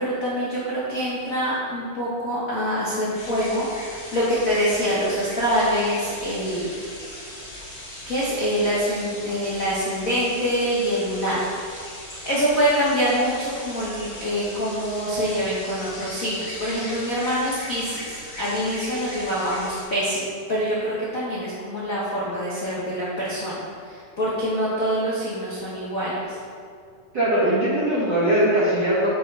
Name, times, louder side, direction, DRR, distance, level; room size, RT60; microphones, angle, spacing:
voice 1, 0.0-6.7 8.1-11.5 12.2-26.4, equal, 75° left, -8 dB, 0.7 m, -25 dB
sound 1, 3.1-19.8, left 1 dB, 40° left, 0.9 m, -38 dB
voice 2, 27.1-29.2, right 1 dB, 65° right, -8 dB, 1.1 m, -20 dB
8.7 x 6.6 x 3.3 m, 2.2 s
omnidirectional pair, 3.7 m